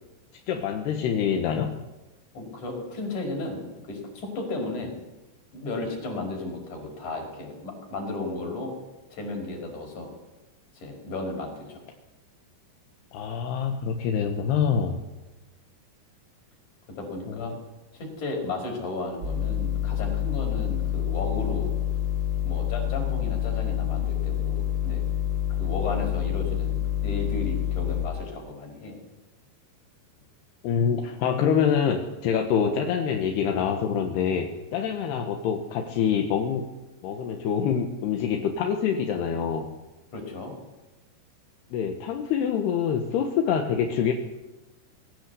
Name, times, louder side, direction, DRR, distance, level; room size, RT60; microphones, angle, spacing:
voice 1, 0.5-1.7 13.1-15.0 17.3-17.6 30.6-36.7 37.0-39.7 41.7-44.1, left 7 dB, 65° left, 3 dB, 3.0 m, -26 dB
voice 2, 2.3-5.0 5.5-8.7 9.1-10.1 10.8-11.8 17.0-17.5 17.9-21.7 22.4-25.0 25.6-29.0 40.1-40.5, left 2 dB, 40° left, 2 dB, 6.3 m, -34 dB
sound 1, 19.2-28.1, left 11 dB, 20° right, 5.3 m, -27 dB
22.0 x 16.5 x 8.4 m, 1.0 s
omnidirectional pair, 5.8 m